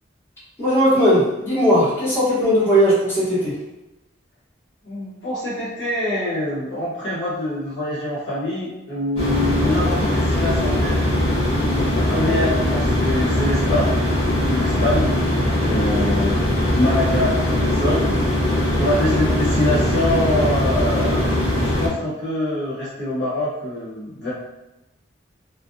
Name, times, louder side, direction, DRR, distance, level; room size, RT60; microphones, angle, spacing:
voice 1, 0.6-3.5 12.4-12.5, equal, 15° left, -12 dB, 1.1 m, -18 dB
voice 2, 4.8-10.9 11.9-15.1 15.6-18.0 18.8-24.3, left 1 dB, 65° left, -8 dB, 1.1 m, -25 dB
sound 1, 9.2-21.9, left 1 dB, 30° left, 0.7 m, -20 dB
2.5 x 2.1 x 2.6 m, 0.97 s
head